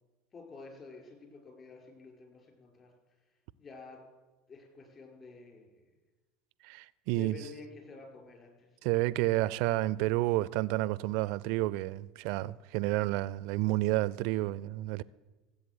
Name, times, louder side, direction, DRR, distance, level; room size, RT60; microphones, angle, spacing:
voice 1, 0.3-2.9 3.6-4.0 4.5-5.8 7.1-8.9, left 3 dB, 35° left, 5.5 m, -50 dB
voice 2, 6.6-7.4 8.8-15.0, right 18 dB, 60° right, 0.4 m, -30 dB
15.5 x 8.1 x 7.8 m
hypercardioid pair, 75°, 0 cm